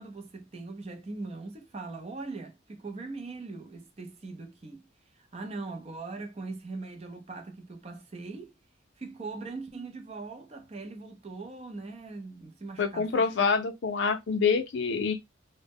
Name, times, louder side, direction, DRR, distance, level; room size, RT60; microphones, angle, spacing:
voice 1, 0.0-4.8 5.1-8.5 9.0-13.3, right 3 dB, 30° right, 0.4 m, -41 dB
voice 2, 12.8-15.1, left 5 dB, 65° left, 0.4 m, -26 dB
2.1 x 2.0 x 3.4 m
head